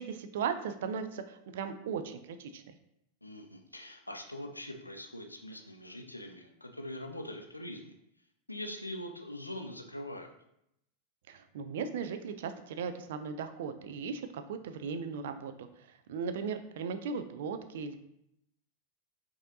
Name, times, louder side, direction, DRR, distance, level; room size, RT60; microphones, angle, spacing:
voice 1, 0.0-2.6 11.3-15.7 16.1-18.0, right 6 dB, 55° right, 9 dB, 0.3 m, -37 dB
voice 2, 3.2-7.9 8.5-10.3, left 1 dB, 85° left, 5 dB, 0.4 m, -43 dB
4.9 x 2.7 x 2.6 m, 0.78 s
figure-of-eight pair, 90°, 0 cm